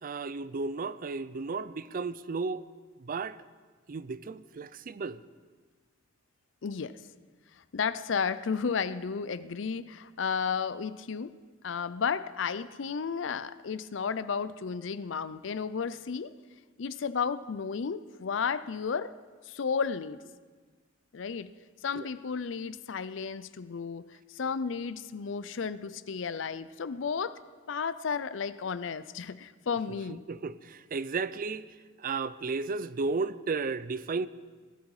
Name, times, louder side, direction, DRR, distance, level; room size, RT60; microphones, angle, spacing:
voice 1, 0.0-2.7 3.0-3.4 3.9-5.2 22.0-22.1 30.1-31.7 32.0-34.3, right 4 dB, 45° right, 0.5 m, -34 dB
voice 2, 6.6-7.0 7.7-11.4 11.6-16.3 16.8-19.1 19.5-20.2 21.1-21.5 21.8-27.4 27.7-30.3, left 6 dB, 70° left, 0.5 m, -33 dB
18.5 x 12.5 x 4.9 m
head